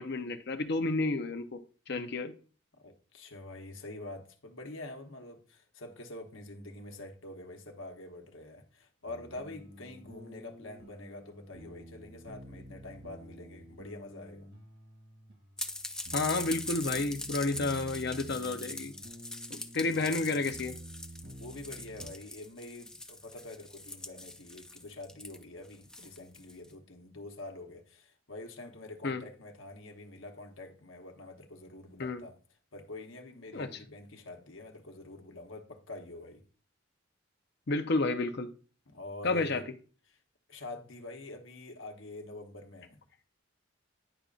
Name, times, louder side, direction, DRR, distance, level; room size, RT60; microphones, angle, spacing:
voice 1, 0.0-1.6 1.9-2.3 16.1-18.9 19.5-20.7 29.0-29.2 32.0-32.2 33.5-33.7 37.7-38.5 39.2-39.6, left 3 dB, 55° left, 0.7 m, -31 dB
voice 2, 2.8-14.5 19.3-19.5 21.4-32.4 32.7-36.4 38.9-39.6 40.1-40.2 40.5-43.0, left 2 dB, 75° left, 1.1 m, -46 dB
sound 1, 9.0-22.1, right 1 dB, 70° right, 2.2 m, -50 dB
sound 2, 15.6-26.6, left 2 dB, 5° left, 0.3 m, -42 dB
10.0 x 5.3 x 2.5 m
head